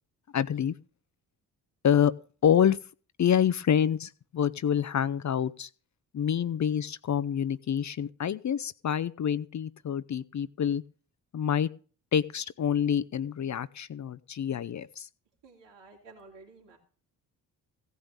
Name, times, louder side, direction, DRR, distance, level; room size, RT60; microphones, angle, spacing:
voice 1, 0.3-0.7 1.8-2.1 2.4-2.8 3.2-5.7 6.1-10.8 11.3-11.7 12.1-15.1, left 9 dB, 35° left, 14 dB, 0.7 m, -27 dB
voice 2, 15.4-16.8, right 3 dB, 60° right, -1 dB, 3.0 m, -52 dB
16.5 x 5.4 x 9.0 m, 0.39 s
hypercardioid pair, 40°, 49 cm